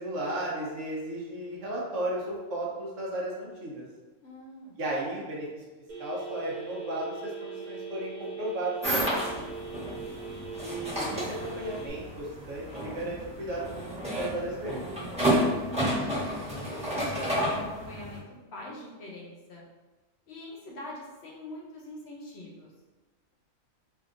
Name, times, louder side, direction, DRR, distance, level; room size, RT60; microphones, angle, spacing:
voice 1, 0.0-3.8 4.8-5.6 6.0-9.4 10.6-14.8, right 1 dB, 70° right, -4 dB, 1.1 m, -35 dB
voice 2, 4.2-4.8 10.1-10.3 15.2-19.6 20.3-22.7, left 1 dB, 60° left, -3 dB, 0.8 m, -43 dB
Telephone, 5.9-11.9, right 5 dB, 45° right, 0.7 m, -40 dB
sound 1, 8.8-18.2, equal, 5° right, 1.1 m, -31 dB
3.4 x 2.7 x 2.5 m, 1.2 s
omnidirectional pair, 1.4 m